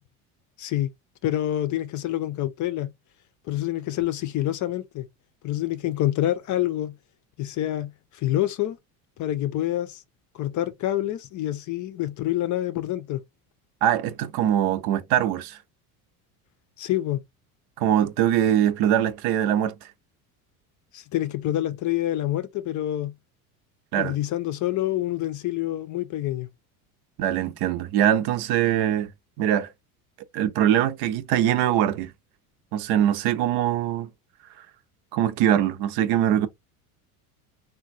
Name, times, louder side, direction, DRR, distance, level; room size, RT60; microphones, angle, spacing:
voice 1, 0.6-0.9 1.2-2.9 3.5-5.1 5.4-6.9 7.4-8.8 9.2-10.0 10.3-13.2 16.8-17.2 20.9-23.1 24.0-26.5, left 14 dB, 40° left, 0.5 m, -27 dB
voice 2, 13.8-15.6 17.8-19.7 23.9-24.1 27.2-29.1 29.4-29.7 30.3-32.1 32.7-34.1 35.1-36.5, right 11 dB, 60° right, 0.7 m, -22 dB
3.7 x 2.3 x 2.5 m
hypercardioid pair, 85°, 45 cm